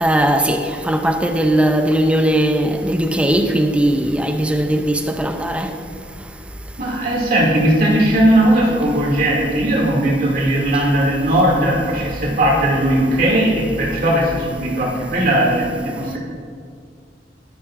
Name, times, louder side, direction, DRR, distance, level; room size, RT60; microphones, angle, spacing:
voice 1, 0.0-5.7, right 1 dB, 5° right, 0.5 m, -18 dB
voice 2, 6.8-16.2, right 1 dB, 55° right, 2.5 m, -17 dB
12.5 x 10.5 x 2.6 m
head